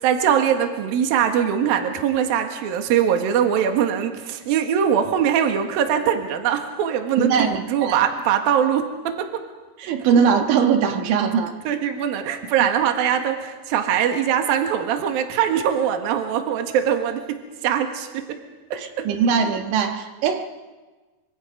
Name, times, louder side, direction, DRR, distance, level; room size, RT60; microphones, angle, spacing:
voice 1, 0.0-9.4 11.6-18.3 18.7-19.1, right 8 dB, 60° right, 5 dB, 3.1 m, -22 dB
voice 2, 7.2-8.0 9.8-11.5 18.8-20.4, right 6 dB, 80° right, 5 dB, 3.7 m, -21 dB
26.5 x 25.5 x 5.2 m, 1.3 s
omnidirectional pair, 5.3 m